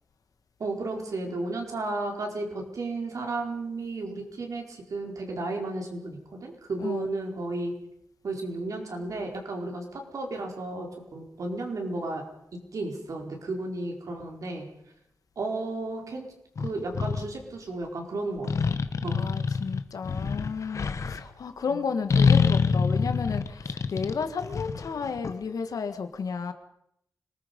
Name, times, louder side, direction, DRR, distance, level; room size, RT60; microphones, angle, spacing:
voice 1, 0.6-7.7 8.2-12.2 12.7-14.7 15.4-16.2 16.6-19.3 21.7-21.8, right 2 dB, 65° right, 1 dB, 4.6 m, -33 dB
sound 1, 16.6-17.3 18.4-21.2 22.1-25.3, left 5 dB, 55° left, 1.2 m, -25 dB
voice 2, 19.1-26.5, left 5 dB, 75° left, 8 dB, 1.8 m, -32 dB
25.5 x 19.5 x 5.4 m, 0.78 s
wide cardioid pair, 115°, 6 cm